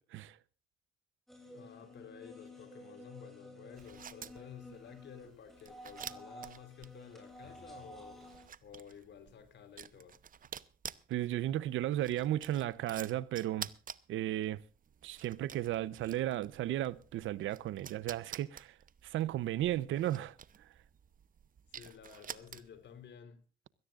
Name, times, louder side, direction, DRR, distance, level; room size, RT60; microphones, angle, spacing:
sound 1, 1.3-8.5, equal, ahead, 7.6 m, -52 dB
voice 1, 1.4-8.2 8.6-10.2 21.7-23.4, left 8 dB, 65° left, 3.7 m, -52 dB
sound 2, 3.7-22.9, right 8 dB, 45° right, 0.8 m, -50 dB
voice 2, 11.1-13.7 14.1-14.6 15.0-18.7 19.0-20.3, right 13 dB, 80° right, 0.8 m, -34 dB
23.0 x 17.5 x 2.5 m
cardioid pair, 90°, 20 cm